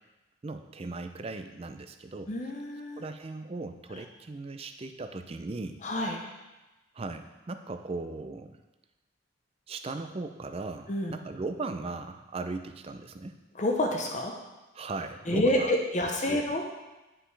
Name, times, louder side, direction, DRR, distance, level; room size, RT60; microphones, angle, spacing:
voice 1, 0.4-2.3 3.0-5.8 6.9-8.6 9.7-13.4 14.7-15.8 16.3-16.4, right 3 dB, 30° right, 8 dB, 0.4 m, -38 dB
voice 2, 2.3-3.0 5.8-6.2 10.9-11.1 13.6-14.4 15.3-16.6, left 1 dB, 35° left, 1 dB, 0.7 m, -28 dB
9.9 x 5.4 x 3.3 m, 1.1 s
head